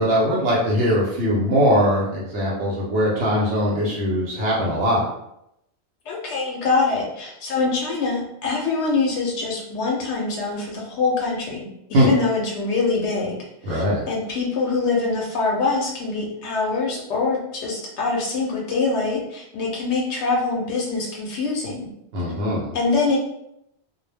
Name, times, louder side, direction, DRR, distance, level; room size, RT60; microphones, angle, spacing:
voice 1, 0.0-5.0 11.9-12.1 13.6-14.0 22.1-22.7, equal, 80° right, -5 dB, 1.0 m, -21 dB
voice 2, 6.1-13.4 13.6-21.9 22.7-23.2, left 3 dB, 80° left, -2 dB, 0.8 m, -24 dB
2.2 x 2.1 x 3.2 m, 0.81 s
omnidirectional pair, 1.1 m